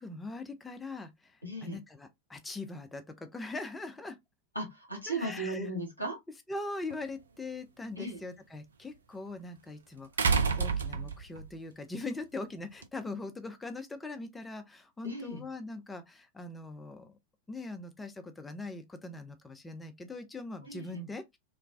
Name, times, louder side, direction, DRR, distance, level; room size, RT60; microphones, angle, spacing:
voice 1, 0.0-4.2 5.1-5.7 6.5-10.3 10.6-17.1 17.5-21.4, left 2 dB, 10° left, 0.5 m, -41 dB
voice 2, 1.4-1.8 4.5-6.2 8.0-8.2 15.0-15.5 20.6-21.0, right 1 dB, 90° right, 1.2 m, -36 dB
sound 1, 6.9-7.0 10.2-11.5 12.8-12.9, right 5 dB, 70° right, 0.4 m, -28 dB
3.0 x 2.2 x 2.3 m
figure-of-eight pair, 90°, 0 cm